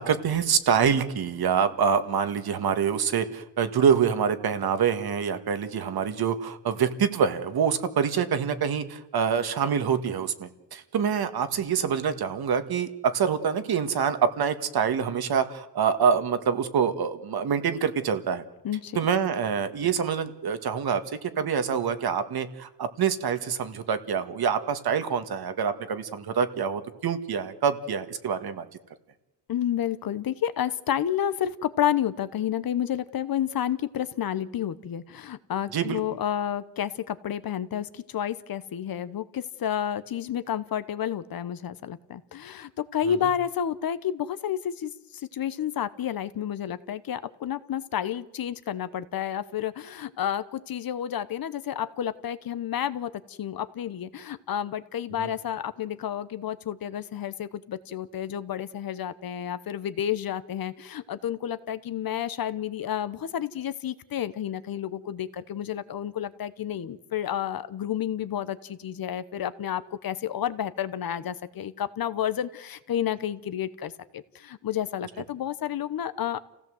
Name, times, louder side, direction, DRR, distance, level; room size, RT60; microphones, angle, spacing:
voice 1, 0.0-18.4 19.0-28.7 35.7-36.0 55.2-55.3, right 7 dB, 55° right, 9 dB, 1.8 m, -26 dB
voice 2, 18.6-19.0 29.5-76.4, left 10 dB, 50° left, 14 dB, 1.0 m, -30 dB
28.5 x 16.5 x 7.9 m, 0.97 s
cardioid pair, 140°, 44 cm